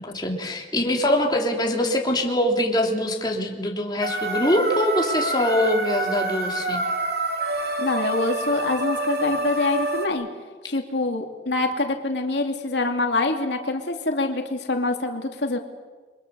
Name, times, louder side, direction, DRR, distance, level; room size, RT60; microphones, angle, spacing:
voice 1, 0.0-6.8, left 1 dB, 25° left, 0 dB, 3.2 m, -23 dB
sound 1, 4.0-10.1, right 2 dB, 60° right, 2.9 m, -27 dB
voice 2, 7.8-10.3 10.6-15.6, left 2 dB, 90° left, 3 dB, 2.6 m, -25 dB
30.0 x 23.5 x 6.9 m, 1.4 s
head